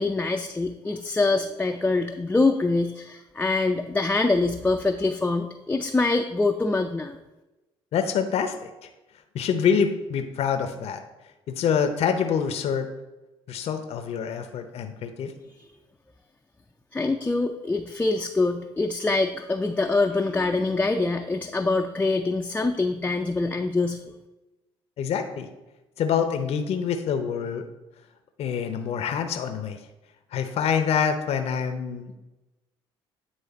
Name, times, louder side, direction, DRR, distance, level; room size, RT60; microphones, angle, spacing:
voice 1, 0.0-7.2 16.9-24.0, left 3 dB, 15° left, 3 dB, 0.5 m, -24 dB
voice 2, 7.9-8.7 9.3-11.0 11.5-12.9 13.5-15.3 25.0-25.5 26.0-27.6 28.4-29.8 30.3-32.2, left 7 dB, 60° left, 7 dB, 0.7 m, -26 dB
9.7 x 3.2 x 4.1 m, 1.0 s
supercardioid pair, 65°, 12 cm